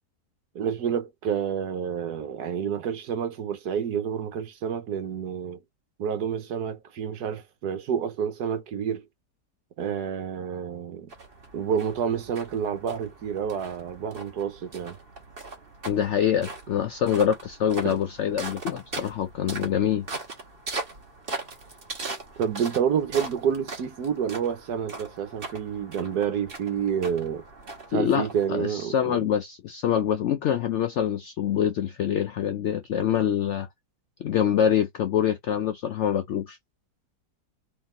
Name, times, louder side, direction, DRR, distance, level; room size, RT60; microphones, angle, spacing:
voice 1, 0.5-5.6 6.0-9.0 9.8-11.1 11.5-15.0 17.8-18.0 19.6-19.7 22.4-27.4 27.9-29.3, right 8 dB, 75° right, 1.5 m, -29 dB
sound 1, 11.1-28.8, right 3 dB, 35° right, 1.7 m, -40 dB
voice 2, 15.9-20.1 27.9-33.7 34.2-36.6, left 9 dB, 75° left, 0.6 m, -25 dB
4.0 x 3.3 x 3.9 m
omnidirectional pair, 1.7 m